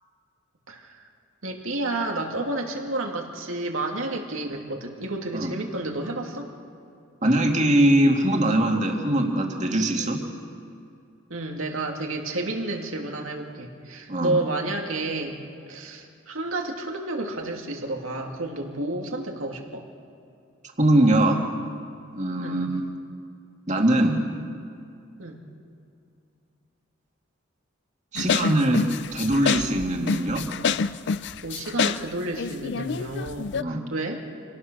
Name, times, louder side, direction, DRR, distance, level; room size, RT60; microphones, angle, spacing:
voice 1, 0.7-1.0 1.4-6.5 10.0-10.1 11.3-15.4 15.7-19.8 22.4-22.6 25.2-25.4 31.4-34.3, right 2 dB, 85° right, 1 dB, 2.7 m, -31 dB
voice 2, 7.2-10.2 14.1-14.4 20.8-21.4 22.1-22.8 23.7-24.2 28.1-28.8 29.1-30.4 33.5-33.8, right 1 dB, 35° right, 1 dB, 2.2 m, -22 dB
sound 1, 28.2-33.6, left 6 dB, 55° left, 0.5 m, -27 dB
25.5 x 18.0 x 6.4 m, 2.5 s
head